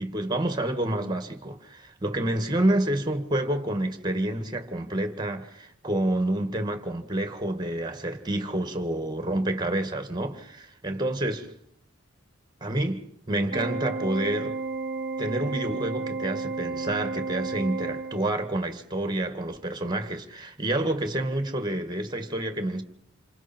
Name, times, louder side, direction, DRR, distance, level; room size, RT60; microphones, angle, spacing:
voice 1, 0.0-11.6 12.6-14.6 15.2-22.8, right 1 dB, 20° right, 2.1 m, -28 dB
Organ, 13.5-18.6, right 4 dB, 50° right, 1.2 m, -32 dB
29.0 x 28.0 x 4.6 m
head